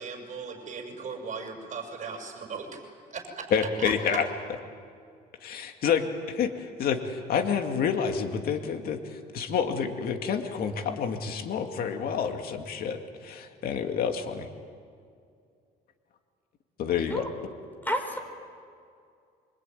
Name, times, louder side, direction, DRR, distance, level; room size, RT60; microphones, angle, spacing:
voice 1, 0.0-2.8 3.1-3.5, right 5 dB, 45° right, 3 dB, 6.9 m, -38 dB
voice 2, 3.5-4.2 5.4-14.5 16.8-17.2, left 7 dB, 60° left, 5 dB, 2.3 m, -28 dB
voice 3, 17.9-18.2, equal, 10° left, 5 dB, 4.7 m, -29 dB
25.5 x 25.0 x 9.4 m, 2.3 s
cardioid pair, 110°, 17 cm